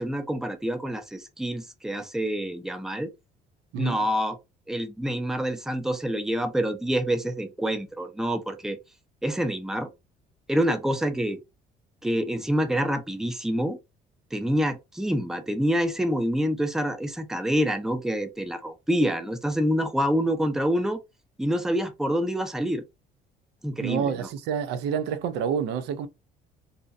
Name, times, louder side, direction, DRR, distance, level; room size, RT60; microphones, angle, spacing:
voice 1, 0.0-3.1 3.8-4.4 4.7-8.8 9.2-9.9 10.5-11.4 12.0-13.8 14.3-21.0 21.4-22.8 23.6-24.3, equal, 5° right, 0.4 m, -27 dB
voice 2, 23.8-26.1, right 7 dB, 85° right, 0.4 m, -28 dB
2.6 x 2.1 x 2.4 m
cardioid pair, 110°, 17 cm